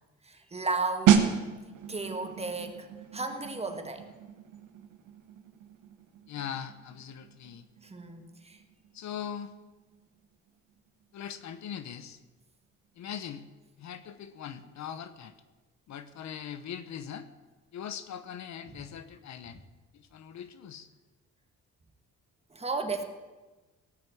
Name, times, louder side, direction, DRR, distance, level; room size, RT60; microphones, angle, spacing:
voice 1, 0.2-1.4 1.9-2.9 3.1-4.1 7.8-8.6 22.5-23.0, right 3 dB, 20° right, 6 dB, 1.6 m, -34 dB
sound 1, 1.1-11.6 11.8-12.1, right 8 dB, 90° right, 1.3 m, -32 dB
voice 2, 6.3-7.7 8.9-9.5 11.1-12.2 13.0-13.4 13.8-15.3 15.9-17.3 17.7-19.6 19.9-20.9, left 8 dB, 65° left, 12 dB, 1.0 m, -40 dB
18.0 x 6.3 x 7.8 m, 1.2 s
cardioid pair, 90°, 30 cm